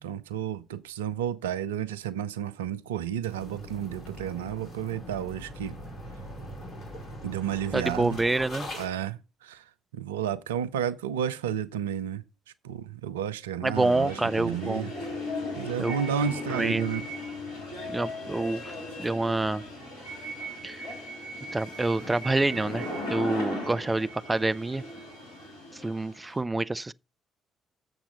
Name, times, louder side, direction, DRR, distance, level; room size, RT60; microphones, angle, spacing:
voice 1, 0.0-5.7 7.2-8.2 8.8-9.6 9.9-12.2 12.6-14.9 15.6-17.1, right 9 dB, 75° right, 0.4 m, -32 dB
sound 1, 3.2-8.8, equal, 55° left, 4.8 m, -41 dB
voice 2, 7.7-8.7 13.6-14.9 15.8-16.0 16.5-16.9 17.9-18.7 19.0-19.6 20.6-20.8 21.5-24.8 25.8-26.9, right 2 dB, 20° right, 0.4 m, -27 dB
sound 2, 13.7-26.4, left 1 dB, 70° left, 3.0 m, -37 dB
7.1 x 7.0 x 6.4 m
figure-of-eight pair, 45°, 0 cm